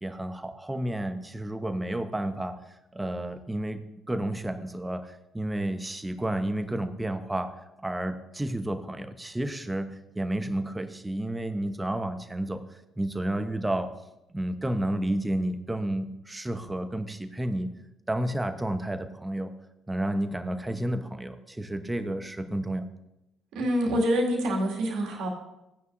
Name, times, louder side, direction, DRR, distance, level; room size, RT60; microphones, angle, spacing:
voice 1, 0.0-2.6 2.9-12.6 13.0-13.9 14.3-17.7 18.1-19.5 19.9-22.8, right 1 dB, 10° right, 9 dB, 0.9 m, -31 dB
voice 2, 23.5-25.3, equal, 55° right, -1 dB, 2.2 m, -26 dB
15.5 x 9.4 x 2.6 m, 0.92 s
figure-of-eight pair, 50°, 0 cm